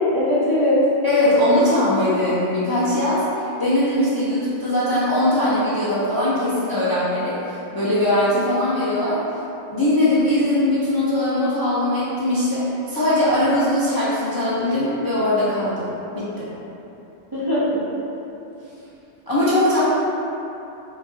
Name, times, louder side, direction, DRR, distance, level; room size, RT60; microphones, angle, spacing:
voice 1, 0.1-0.8 17.3-17.8, left 1 dB, 35° right, -11 dB, 0.4 m, -20 dB
voice 2, 1.0-9.2 9.7-16.5 18.6-18.7 19.3-19.8, left 1 dB, 35° left, -10 dB, 0.4 m, -20 dB
3.8 x 2.8 x 2.6 m, 3.0 s
omnidirectional pair, 1.0 m